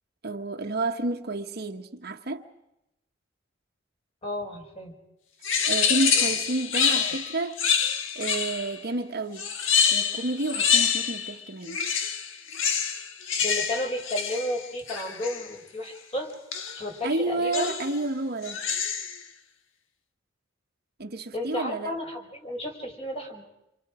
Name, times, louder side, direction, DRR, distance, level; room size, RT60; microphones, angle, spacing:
voice 1, 0.2-2.4 5.7-7.6 8.1-9.5 9.9-11.8 17.0-18.6 21.0-21.9, right 2 dB, 55° right, 1.3 m, -30 dB
voice 2, 4.2-4.9 6.1-6.3 13.4-16.3 16.7-17.7 21.3-23.4, left 1 dB, 30° left, 5.1 m, -33 dB
sound 1, 5.4-8.8 9.4-11.4 11.6-15.5 16.5-16.9 17.5-18.0 18.4-19.2, left 7 dB, 70° left, 1.7 m, -26 dB
29.0 x 26.0 x 5.0 m
head